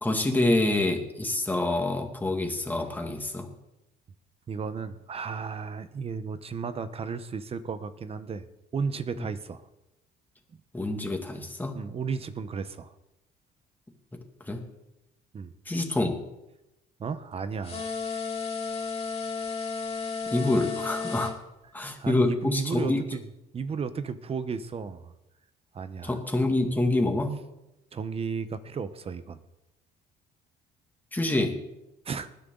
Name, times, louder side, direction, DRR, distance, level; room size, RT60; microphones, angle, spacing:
voice 1, 0.0-3.5 9.2-9.3 10.7-11.7 14.4-14.6 15.7-16.2 20.3-21.3 21.7-23.0 26.0-27.4 31.1-31.6, left 2 dB, 10° left, 3 dB, 2.4 m, -26 dB
voice 2, 4.5-8.4 8.7-9.6 11.7-12.9 15.3-15.5 17.0-17.9 22.0-23.2 23.5-25.1 25.7-26.2 27.9-29.4 32.0-32.3, right 5 dB, 35° right, 12 dB, 1.0 m, -34 dB
sound 1, 17.6-21.3, left 5 dB, 35° left, 3.7 m, -33 dB
20.0 x 10.0 x 4.0 m, 0.94 s
cardioid pair, 110°, 17 cm